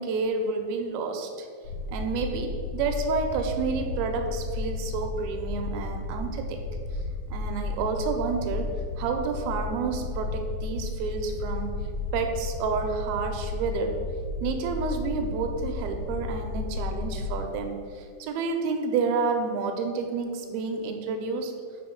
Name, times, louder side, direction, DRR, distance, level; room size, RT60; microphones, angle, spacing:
voice 1, 0.0-1.5 1.9-6.6 7.3-8.7 9.0-11.7 12.1-14.0 14.4-21.5, right 4 dB, 80° right, 4 dB, 2.3 m, -29 dB
sound 1, 1.6-17.4, left 3 dB, 85° left, 1.7 m, -33 dB
5.9 x 4.1 x 6.3 m, 2.2 s
omnidirectional pair, 4.8 m